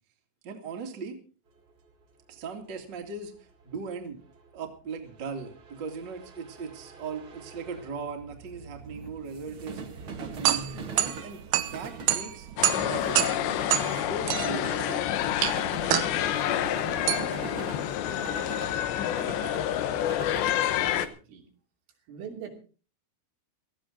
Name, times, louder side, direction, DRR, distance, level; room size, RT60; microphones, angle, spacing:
voice 1, 0.4-1.2 2.3-3.3 3.6-4.2 4.5-9.8 10.2-12.5 12.8-14.7, right 5 dB, 35° right, 3 dB, 2.0 m, -38 dB
sound 1, 1.6-21.1, right 4 dB, 55° right, 1.5 m, -43 dB
sound 2, 10.0-19.1, right 13 dB, 75° right, 2.5 m, -30 dB
sound 3, 12.6-21.1, left 12 dB, 75° left, 3.0 m, -28 dB
voice 2, 20.5-21.5 22.1-22.5, right 8 dB, 90° right, 1 dB, 5.6 m, -43 dB
18.0 x 14.5 x 3.9 m, 0.37 s
omnidirectional pair, 5.5 m